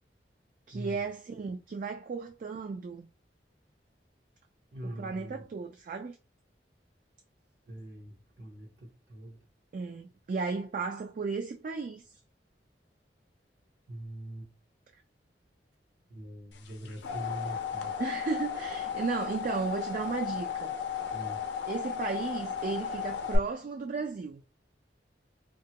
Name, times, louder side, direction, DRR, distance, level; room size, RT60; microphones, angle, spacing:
voice 1, 0.7-3.1 4.8-6.2 9.7-12.0 18.0-20.7 21.7-24.4, right 4 dB, 45° right, 0.3 m, -34 dB
voice 2, 4.7-5.4 7.7-9.4 13.9-14.5 16.1-18.0 21.1-21.5, right 1 dB, 65° right, 0.7 m, -42 dB
sound 1, 16.7-23.4, left 7 dB, 80° left, 0.5 m, -35 dB
2.9 x 2.3 x 2.8 m
head